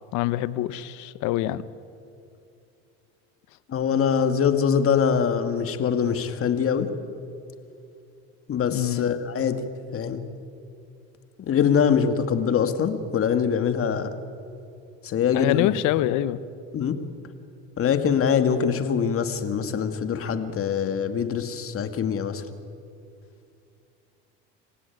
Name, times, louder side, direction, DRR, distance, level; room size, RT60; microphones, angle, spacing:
voice 1, 0.1-1.6 8.7-9.1 15.3-16.4, left 15 dB, 65° left, 16 dB, 1.1 m, -25 dB
voice 2, 3.7-6.9 8.5-9.6 9.9-10.2 11.4-14.2 15.0-15.8 16.7-17.0 17.8-22.4, left 7 dB, 40° left, 8 dB, 2.2 m, -23 dB
27.5 x 16.0 x 9.5 m, 2.5 s
supercardioid pair, 90°, 33 cm